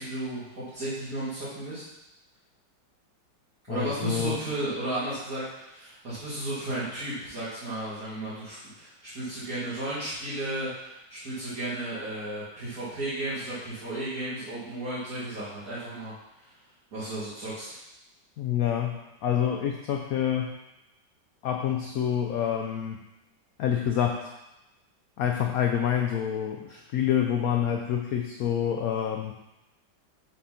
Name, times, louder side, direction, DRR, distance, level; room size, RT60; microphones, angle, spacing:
voice 1, 0.0-1.8 3.7-16.1 16.4-16.5 16.9-17.8, right 1 dB, 50° right, -12 dB, 2.1 m, -34 dB
voice 2, 3.7-4.4 18.4-20.6 21.4-23.0 23.6-24.3 25.2-29.3, left 9 dB, 85° left, 3 dB, 0.7 m, -27 dB
6.5 x 3.8 x 5.6 m, 0.94 s
omnidirectional pair, 2.1 m